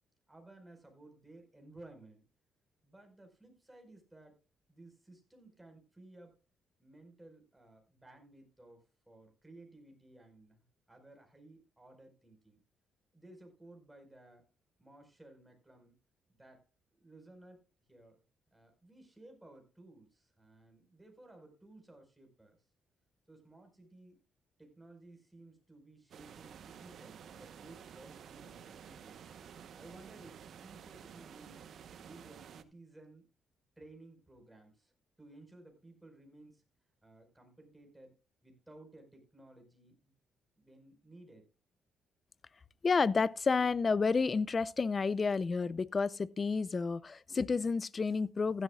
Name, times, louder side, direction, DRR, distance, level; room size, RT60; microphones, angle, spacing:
voice 1, 0.3-2.3 2.8-4.4 4.7-6.3 6.8-12.6 13.1-14.4 14.8-16.0 16.3-17.6 17.9-18.2 18.5-22.6 23.3-24.2 24.6-29.2 29.8-31.6 32.0-33.2 33.8-34.9 35.2-36.6 37.0-38.2 38.4-40.1 40.6-41.5, right 2 dB, 10° right, 4.9 m, -57 dB
sound 1, 26.1-32.6, right 8 dB, 65° right, 1.0 m, -52 dB
voice 2, 42.8-48.6, left 4 dB, 35° left, 0.5 m, -30 dB
15.5 x 11.5 x 2.4 m
cardioid pair, 90°, 0 cm